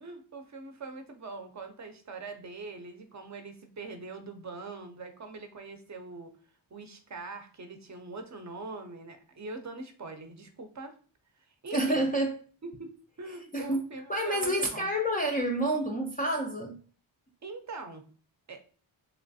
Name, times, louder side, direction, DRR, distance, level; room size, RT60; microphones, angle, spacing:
voice 1, 0.0-6.3 6.7-10.9 11.4-12.1 12.6-12.9 13.2-14.9 17.4-18.0 18.5-18.6, right 3 dB, 35° right, 6 dB, 0.6 m, -43 dB
voice 2, 11.7-12.4 13.5-13.8 14.1-16.8, right 1 dB, 20° left, 0 dB, 0.3 m, -28 dB
3.2 x 3.1 x 2.6 m, 0.42 s
wide cardioid pair, 115°, 48 cm